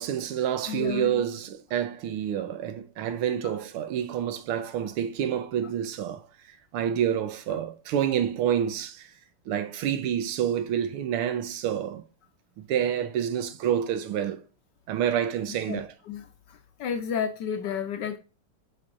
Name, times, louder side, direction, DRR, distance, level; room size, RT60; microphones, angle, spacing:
voice 1, 0.0-9.1 9.5-12.0 12.6-14.4 14.9-15.9, right 9 dB, 85° right, 1.7 m, -28 dB
voice 2, 0.7-1.2 15.7-16.2 16.8-18.2, left 7 dB, 70° left, 1.1 m, -31 dB
8.2 x 4.9 x 2.4 m
omnidirectional pair, 2.4 m